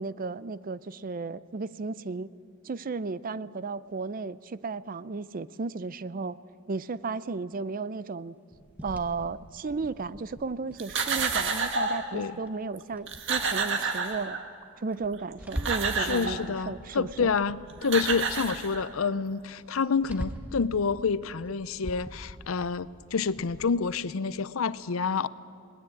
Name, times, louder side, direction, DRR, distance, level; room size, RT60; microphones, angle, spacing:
voice 1, 0.0-2.3 2.6-6.4 6.7-8.3 8.8-14.4 14.8-17.3, right 4 dB, 45° right, 17 dB, 0.5 m, -34 dB
sound 1, 8.5-12.2 12.5-12.6 12.9-14.2 14.7-16.0 16.3-18.9 19.2-19.3 19.6-20.6 21.3-23.8, equal, 5° right, 1.2 m, -43 dB
sound 2, 10.8-12.1 12.8-12.9 13.1-14.6 15.3-16.4 17.5-17.6 17.8-19.1, right 4 dB, 60° right, 1.8 m, -29 dB
voice 2, 16.0-25.3, left 5 dB, 85° left, 17 dB, 0.6 m, -28 dB
20.0 x 19.5 x 8.6 m, 2.4 s
head